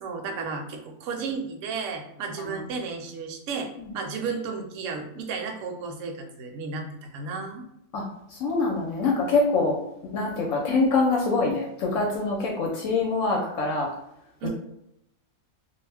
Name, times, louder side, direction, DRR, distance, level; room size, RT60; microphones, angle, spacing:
voice 1, 0.0-7.7 14.4-14.5, right 4 dB, 70° right, 3 dB, 0.9 m, -33 dB
voice 2, 8.3-9.8 10.1-13.9, left 3 dB, 75° left, -1 dB, 0.9 m, -24 dB
2.4 x 2.1 x 3.2 m, 0.83 s
omnidirectional pair, 1.4 m